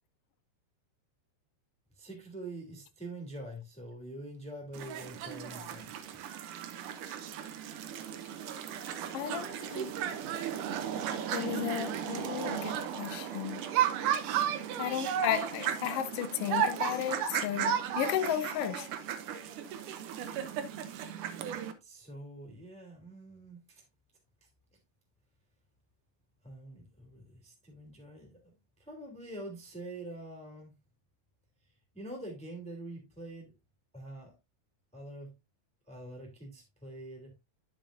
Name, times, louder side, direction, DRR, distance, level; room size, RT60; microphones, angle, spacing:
voice 1, 1.9-5.9 21.8-23.8 26.4-30.7 31.9-33.5 33.9-34.3 34.9-35.4 35.9-37.3, right 1 dB, ahead, 2.5 m, -45 dB
sound 1, 4.7-21.7, right 9 dB, 90° right, 2.6 m, -34 dB
voice 2, 9.1-9.9 11.3-13.7 14.8-18.9, left 12 dB, 85° left, 1.3 m, -34 dB
10.5 x 7.3 x 2.6 m
omnidirectional pair, 3.5 m